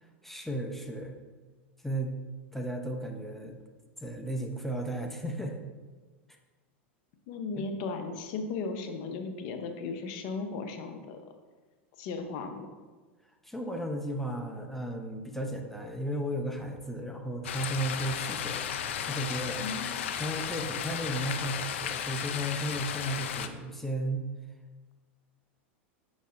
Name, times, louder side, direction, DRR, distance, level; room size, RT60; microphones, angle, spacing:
voice 1, 0.2-1.2 1.8-2.2 2.5-3.6 4.0-5.6 7.6-7.7 13.4-18.7 19.0-19.6 20.1-24.2, right 1 dB, 5° left, 3 dB, 0.7 m, -34 dB
voice 2, 7.3-11.3 12.0-12.7 19.6-20.1, left 4 dB, 55° left, 6 dB, 0.8 m, -36 dB
sound 1, 17.4-23.5, left 9 dB, 80° left, 0.4 m, -34 dB
6.6 x 6.1 x 2.5 m, 1.3 s
hypercardioid pair, 110°, 7 cm